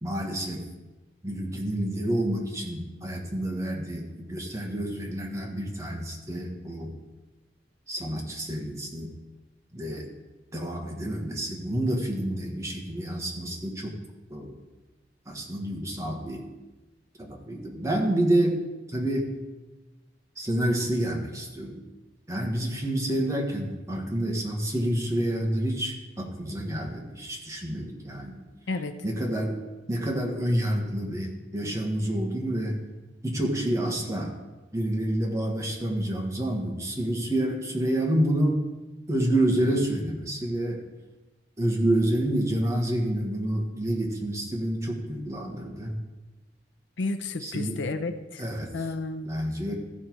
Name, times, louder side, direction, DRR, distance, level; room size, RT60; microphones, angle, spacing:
voice 1, 0.0-0.6 1.2-6.9 7.9-9.1 9.7-10.1 10.5-13.9 14.3-14.6 15.2-16.5 17.2-18.6 18.9-19.3 20.4-21.8 22.3-28.4 29.0-29.6 29.9-32.8 33.2-34.3 34.7-38.6 39.1-40.9 41.6-45.9 47.4-47.8 48.4-48.7 49.2-49.7, right 1 dB, 15° right, 0 dB, 1.5 m, -28 dB
voice 2, 28.7-29.0 47.0-48.4 48.7-49.3, left 3 dB, 85° left, 9 dB, 0.6 m, -31 dB
14.5 x 5.5 x 4.6 m, 1.2 s
head